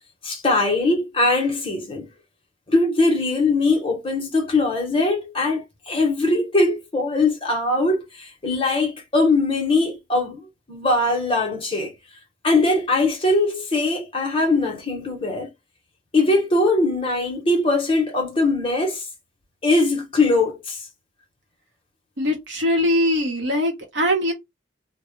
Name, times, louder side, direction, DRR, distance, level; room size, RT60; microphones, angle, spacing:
voice 1, 0.2-2.1 2.7-11.9 12.4-15.5 16.1-19.0 19.6-20.8, left 2 dB, 25° left, 0.7 m, -21 dB
voice 2, 22.2-24.3, left 1 dB, 60° right, 0.8 m, -21 dB
2.1 x 2.0 x 3.0 m
head